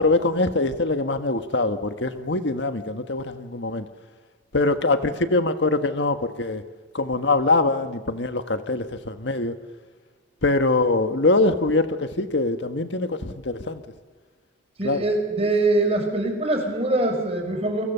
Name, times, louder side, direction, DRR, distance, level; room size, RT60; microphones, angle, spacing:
voice 1, 0.0-3.9 4.5-6.6 6.9-9.5 10.4-13.8 14.8-15.0, left 2 dB, 65° left, 9 dB, 1.5 m, -23 dB
voice 2, 14.8-17.8, right 2 dB, 30° right, 3 dB, 5.3 m, -23 dB
28.5 x 25.0 x 6.9 m, 1.4 s
head